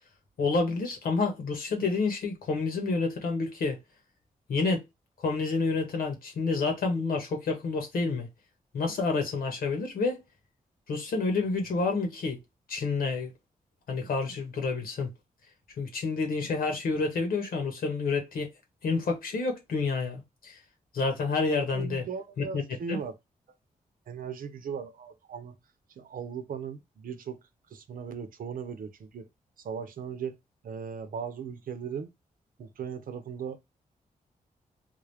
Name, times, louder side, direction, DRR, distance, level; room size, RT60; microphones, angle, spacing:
voice 1, 0.4-3.8 4.5-4.8 5.2-8.3 8.7-10.2 10.9-12.4 12.7-13.3 13.9-15.1 15.8-18.5 18.8-20.6 20.9-22.0 22.5-22.6 22.9-23.0, left 4 dB, 80° left, 1.5 m, -29 dB
voice 2, 21.7-23.1 24.1-25.6 26.0-27.4 27.7-29.3 29.6-30.4 30.6-32.1 32.6-33.6, right 6 dB, 70° right, 0.8 m, -37 dB
3.7 x 2.5 x 3.4 m
cardioid pair, 105°, 15 cm